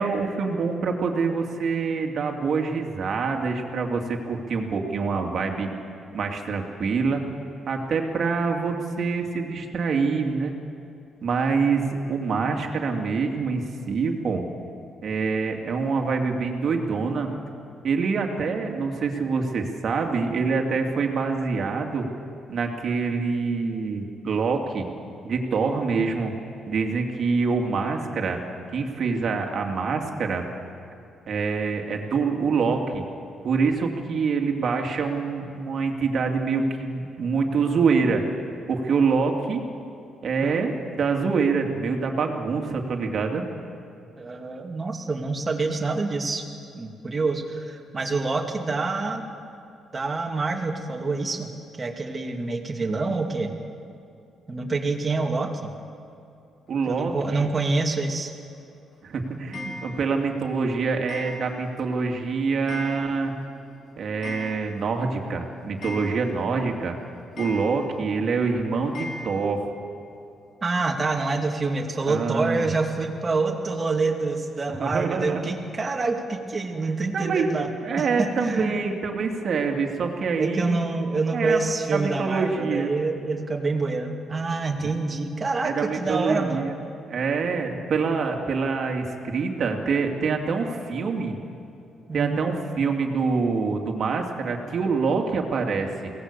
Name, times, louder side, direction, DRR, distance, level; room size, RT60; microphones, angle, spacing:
voice 1, 0.0-5.7 6.1-7.2 7.7-10.5 11.2-14.4 15.0-17.3 17.8-22.1 22.5-24.9 25.2-26.3 26.7-28.4 28.7-30.4 31.3-33.0 33.4-38.2 38.7-39.6 40.2-43.4 56.7-57.5 59.0-63.3 64.0-67.0 67.4-69.7 72.0-72.7 74.8-75.4 76.8-77.5 77.8-80.8 81.3-82.9 84.8-84.9 85.6-86.8 87.1-91.3 92.1-96.1, right 4 dB, 55° right, 3 dB, 2.5 m, -25 dB
voice 2, 44.2-46.4 46.7-49.2 49.9-51.5 51.8-53.5 54.5-55.7 56.9-58.3 70.6-78.8 80.4-86.6 92.1-92.5, right 3 dB, 30° right, 2 dB, 2.5 m, -27 dB
Clock, 59.5-60.3 61.1-61.8 62.1-62.2 62.7-63.4 63.7-63.8 64.0-65.0 65.3-65.4 65.8-66.6 67.4-68.1 68.9-69.5, left 2 dB, 60° left, 6.3 m, -38 dB
22.5 x 18.0 x 6.9 m, 2.7 s
cardioid pair, 90°, 0 cm